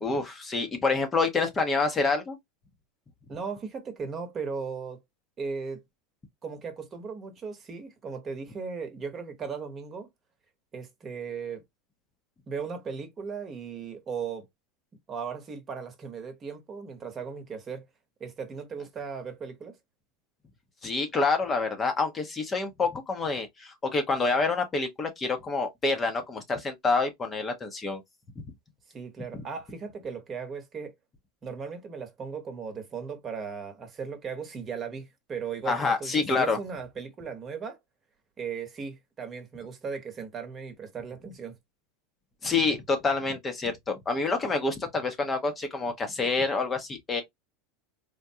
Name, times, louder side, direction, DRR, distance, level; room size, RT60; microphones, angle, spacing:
voice 1, 0.0-2.4 20.8-28.0 35.7-36.6 42.4-47.2, left 3 dB, 25° left, 0.7 m, -27 dB
voice 2, 3.3-5.0 5.4-5.8 6.4-10.1 10.7-11.6 12.5-14.5 15.1-17.8 18.2-19.8 28.9-30.9 31.4-37.8 38.4-41.6, right 5 dB, 30° right, 1.0 m, -37 dB
3.5 x 2.2 x 2.7 m
supercardioid pair, 115°, 0 cm